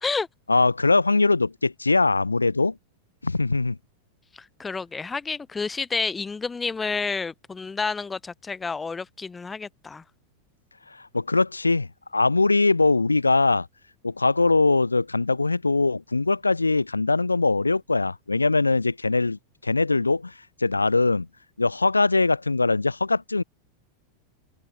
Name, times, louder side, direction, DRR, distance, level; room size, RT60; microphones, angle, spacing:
voice 1, 0.5-2.8 3.2-3.8 11.1-13.7 14.0-20.3 20.6-21.3 21.6-23.4, left 3 dB, 80° left, 0.6 m, -22 dB
voice 2, 4.6-10.0, left 4 dB, 15° left, 0.4 m, -29 dB
open air
figure-of-eight pair, 90°, 0 cm